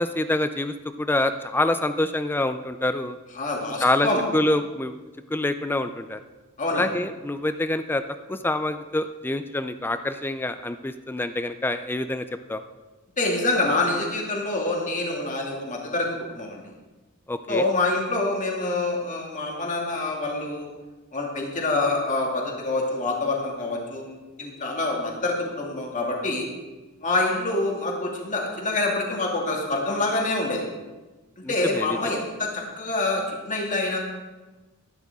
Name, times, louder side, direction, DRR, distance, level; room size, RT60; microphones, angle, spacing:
voice 1, 0.0-3.2 3.8-5.0 5.3-6.2 6.7-8.0 8.3-12.6 17.3-17.7 31.4-32.2, left 1 dB, 10° left, 10 dB, 0.4 m, -26 dB
voice 2, 3.4-4.2 6.6-6.8 13.2-16.6 17.5-20.7 21.1-26.5 27.0-30.6 31.4-34.0, left 2 dB, 35° left, -1 dB, 2.4 m, -26 dB
13.5 x 11.5 x 3.6 m, 1.2 s
head